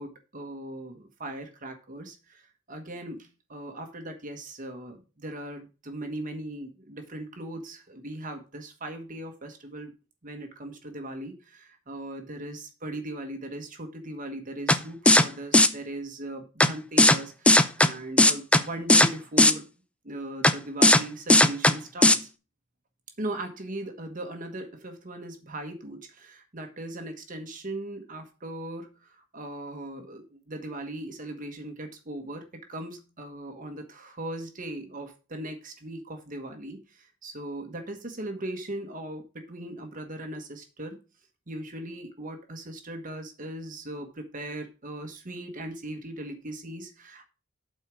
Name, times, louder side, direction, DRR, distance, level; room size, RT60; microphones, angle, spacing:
voice 1, 0.0-9.9 10.2-19.7 20.0-22.3 23.2-41.0 41.5-47.3, right 1 dB, 45° right, 6 dB, 1.4 m, -38 dB
sound 1, 14.7-14.8 15.1-15.2 15.5-15.7 16.6-16.7 17.0-17.2 17.5-17.9 18.2-18.6 18.9-19.1 19.4-19.5 20.4-20.5 20.8-21.0 21.3-21.7 22.0-22.2, left 1 dB, 5° left, 0.5 m, -16 dB
8.2 x 4.5 x 6.1 m, 0.32 s
head